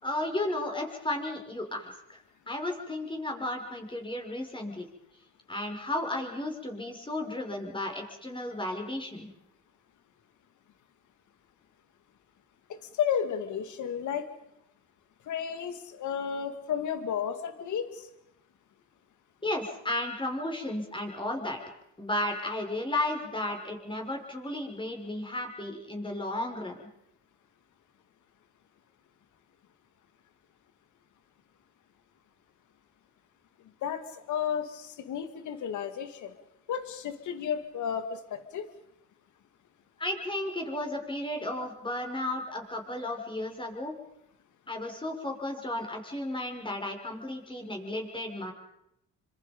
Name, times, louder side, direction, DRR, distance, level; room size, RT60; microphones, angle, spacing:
voice 1, 0.0-4.9 5.5-9.3 19.4-21.6 22.0-26.8 40.0-43.9 44.7-48.5, left 1 dB, 15° left, 3 dB, 6.0 m, -34 dB
voice 2, 12.7-14.3 15.3-18.1 33.8-36.4 36.7-38.7, left 8 dB, 75° left, 9 dB, 2.4 m, -33 dB
28.0 x 25.5 x 5.4 m, 0.81 s
cardioid pair, 90°, 30 cm